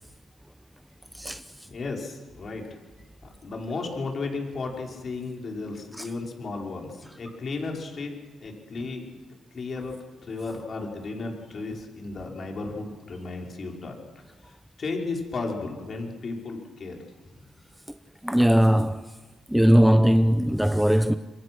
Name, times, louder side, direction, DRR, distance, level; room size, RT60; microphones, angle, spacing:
voice 1, 1.7-2.8 3.4-8.1 8.4-9.1 9.5-9.9 10.2-14.0 14.4-17.0, left 3 dB, 45° left, 5.3 m, -34 dB
voice 2, 18.2-19.0 19.5-21.2, equal, 5° right, 0.8 m, -19 dB
26.5 x 23.0 x 6.3 m
cardioid pair, 90°, 0 cm